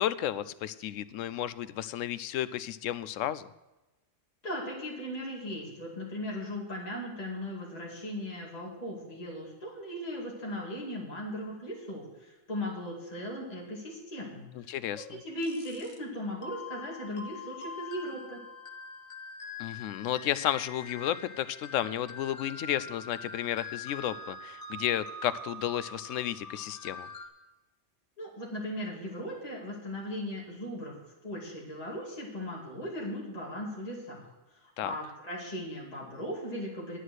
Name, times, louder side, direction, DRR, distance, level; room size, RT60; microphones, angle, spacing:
voice 1, 0.0-3.5 14.6-15.2 19.6-27.1 34.8-34.9, left 11 dB, 85° left, 15 dB, 0.9 m, -32 dB
voice 2, 4.4-18.4 28.2-31.0 31.2-34.3 34.5-37.0, left 1 dB, 30° left, -4 dB, 2.4 m, -38 dB
sound 1, 15.4-16.0 16.4-27.3, left 3 dB, 70° left, 1.5 m, -44 dB
9.9 x 9.8 x 6.2 m, 1.1 s
omnidirectional pair, 1.3 m